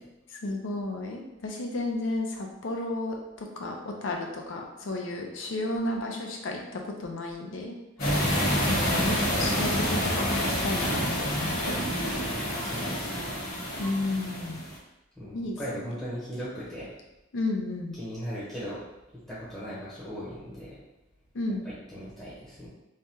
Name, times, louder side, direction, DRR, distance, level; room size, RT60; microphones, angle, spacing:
voice 1, 0.4-7.8 8.7-11.9 13.8-14.6 15.3-15.6 15.8-15.9 17.3-18.0 21.3-21.6, left 2 dB, 70° left, 1 dB, 0.5 m, -33 dB
sound 1, 8.0-14.8, equal, 50° left, 1.3 m, -28 dB
voice 2, 12.4-13.3 15.2-16.9 18.0-18.8 19.1-20.8 21.6-22.7, equal, 5° left, -10 dB, 0.8 m, -38 dB
3.3 x 2.2 x 2.8 m, 0.99 s
head